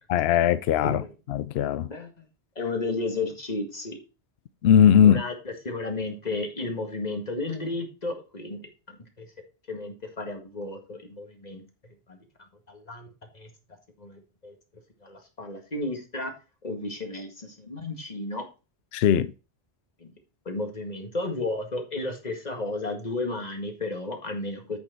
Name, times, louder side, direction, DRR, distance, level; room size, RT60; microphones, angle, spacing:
voice 1, 0.1-1.0 1.3-1.9 4.6-5.2 18.9-19.3, left 9 dB, 65° left, 0.8 m, -19 dB
voice 2, 1.9-2.2 2.6-4.0 5.0-9.3 9.7-11.6 12.1-12.2 12.7-13.1 13.3-13.5 14.0-14.5 15.0-16.3 16.6-18.5 20.0-20.1 20.5-24.8, left 2 dB, 35° left, 2.0 m, -33 dB
8.4 x 6.6 x 4.4 m
omnidirectional pair, 1.2 m